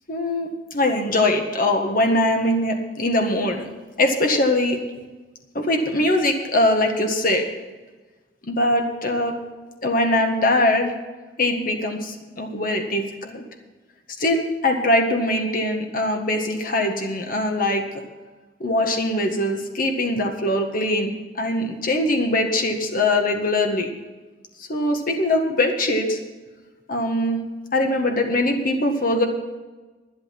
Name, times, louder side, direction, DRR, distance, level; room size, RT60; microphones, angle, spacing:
voice 1, 0.1-3.6 4.0-4.8 5.5-7.4 8.4-9.4 9.8-10.9 11.4-13.4 14.2-17.8 18.6-23.9 24.6-26.2 26.9-27.4 27.7-29.3, left 1 dB, 50° left, 3 dB, 1.7 m, -22 dB
11.5 x 10.5 x 6.0 m, 1.2 s
head